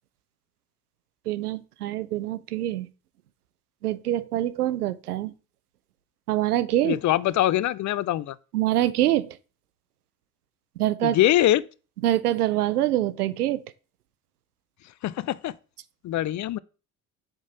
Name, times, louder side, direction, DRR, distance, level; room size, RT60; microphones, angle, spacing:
voice 1, 1.3-2.9 3.8-5.3 6.3-7.0 8.5-9.4 10.8-11.2 12.0-13.6, right 13 dB, 90° right, 0.6 m, -25 dB
voice 2, 6.8-8.4 11.0-11.6 15.0-15.5 16.0-16.6, left 14 dB, 40° left, 0.5 m, -23 dB
7.2 x 3.8 x 5.8 m
hypercardioid pair, 55°, 44 cm